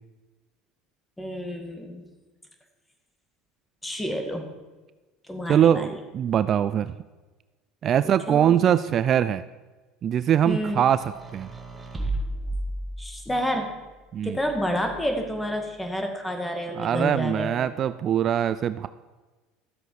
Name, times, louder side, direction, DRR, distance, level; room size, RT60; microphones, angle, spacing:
voice 1, 1.2-2.0 3.8-4.5 5.3-6.0 8.3-8.6 10.5-10.8 13.0-13.8 14.2-17.6, equal, 10° left, 4 dB, 2.0 m, -29 dB
voice 2, 5.5-7.0 7.8-9.4 10.0-11.5 14.1-14.4 16.7-18.9, right 9 dB, 45° right, 14 dB, 0.3 m, -22 dB
sound 1, 10.8-13.5 14.4-15.3, right 1 dB, 15° right, 1.8 m, -34 dB
13.0 x 7.7 x 4.8 m, 1.2 s
hypercardioid pair, 70°, 0 cm